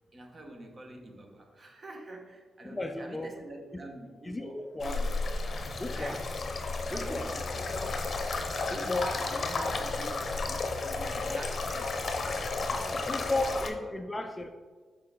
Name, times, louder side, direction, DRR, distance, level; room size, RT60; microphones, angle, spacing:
voice 1, 0.1-5.2 5.9-6.3 6.8-8.1 8.7-9.0 9.3-12.0 12.5-13.5 13.8-13.9, right 1 dB, 35° right, 3 dB, 1.0 m, -46 dB
voice 2, 2.6-3.3 4.2-5.0 5.8-6.2 6.9-7.3 8.7-9.2 13.1-14.5, left 2 dB, 15° left, 6 dB, 0.4 m, -34 dB
sound 1, 4.8-13.7, left 3 dB, 45° left, 0.7 m, -32 dB
6.6 x 4.7 x 3.7 m, 1.4 s
cardioid pair, 100°, 0 cm